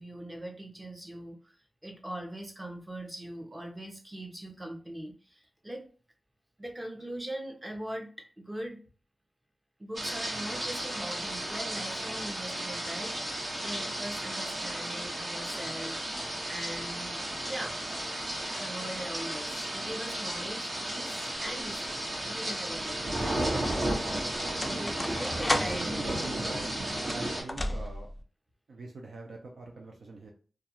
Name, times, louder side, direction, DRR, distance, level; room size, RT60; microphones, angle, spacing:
voice 1, 0.0-1.6 1.8-5.9 6.6-8.8 9.8-17.8 18.5-23.0 24.6-26.0, right 1 dB, 20° right, 2 dB, 0.6 m, -41 dB
sound 1, 9.9-27.4, right 1 dB, 55° right, 1.1 m, -34 dB
sound 2, 21.4-21.9 22.7-28.2, left 1 dB, 20° left, 0.3 m, -36 dB
voice 2, 25.5-26.7 27.0-28.1 28.7-30.3, right 3 dB, 85° right, 1 dB, 0.4 m, -43 dB
2.3 x 2.3 x 2.8 m, 0.39 s
wide cardioid pair, 90°, 0 cm